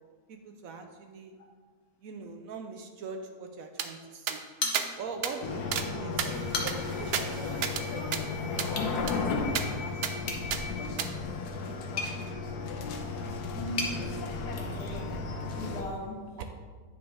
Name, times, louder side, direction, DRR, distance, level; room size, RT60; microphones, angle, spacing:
voice 1, 0.3-1.4 2.0-4.4 5.0-6.3 6.6-7.6 7.9-8.0 8.5-9.4 16.4-16.5, right 4 dB, 70° right, 5 dB, 1.0 m, -42 dB
sound 1, 3.8-3.9 4.3-4.4 4.7-4.9 5.2-5.3 5.7-5.9 6.2-7.8 8.1-8.2 8.6-8.7 9.1-9.2 9.6-9.7 10.0-10.1 10.5-10.6 11.0-11.1, right 7 dB, 90° right, 0.5 m, -32 dB
sound 2, 4.6-5.4 5.7-5.8 6.3-7.0 8.7-9.0 10.2-14.0, left 3 dB, 40° left, 1.0 m, -37 dB
sound 3, 5.4-15.8, left 4 dB, 90° left, 1.3 m, -34 dB
voice 2, 13.5-14.2 14.5-15.2 15.5-16.3, left 1 dB, 70° left, -1 dB, 1.8 m, -39 dB
9.4 x 5.4 x 3.5 m, 1.5 s
omnidirectional pair, 1.7 m